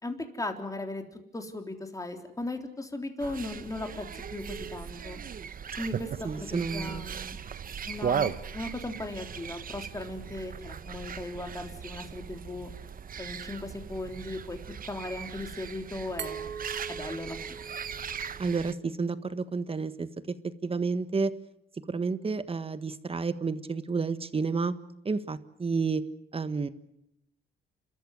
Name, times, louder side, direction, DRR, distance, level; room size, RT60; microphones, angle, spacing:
voice 1, 0.0-1.0 1.3-5.2 5.8-7.4 7.9-12.7 13.2-16.5 16.9-17.4, left 2 dB, 15° left, 5 dB, 3.7 m, -37 dB
sound 1, 3.2-18.7, right 7 dB, 45° right, 1.0 m, -38 dB
voice 2, 6.2-7.0 18.4-21.3 21.9-24.7 25.0-26.0 26.3-26.7, right 4 dB, 30° right, 12 dB, 1.5 m, -30 dB
Glass, 16.2-19.0, right 7 dB, 65° right, 2.4 m, -41 dB
29.5 x 14.0 x 9.6 m, 0.80 s
cardioid pair, 90°, 20 cm